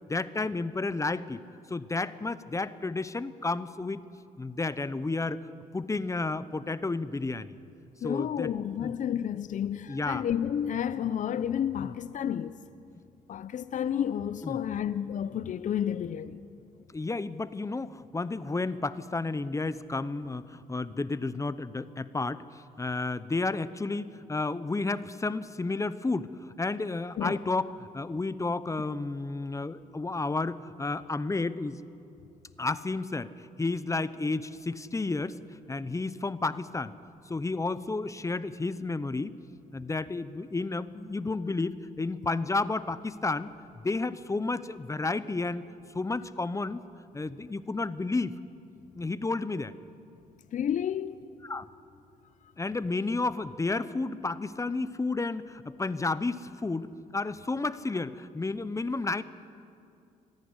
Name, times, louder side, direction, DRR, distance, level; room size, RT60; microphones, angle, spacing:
voice 1, 0.1-1.4 1.7-4.0 4.4-5.4 5.7-7.6 8.0-8.5 8.8-8.9 9.9-10.2 11.8-11.9 14.4-14.6 16.9-31.8 32.6-35.4 35.7-36.9 37.3-39.4 39.7-43.5 43.8-45.6 45.9-46.8 47.1-48.4 49.0-49.7 51.4-51.7 52.6-56.9 57.1-59.2, left 3 dB, 20° left, 0.8 m, -31 dB
voice 2, 8.0-12.6 13.3-16.4 27.2-27.4 50.5-51.2, left 9 dB, 55° left, 0.6 m, -31 dB
26.0 x 11.0 x 9.8 m
cardioid pair, 75°, 15 cm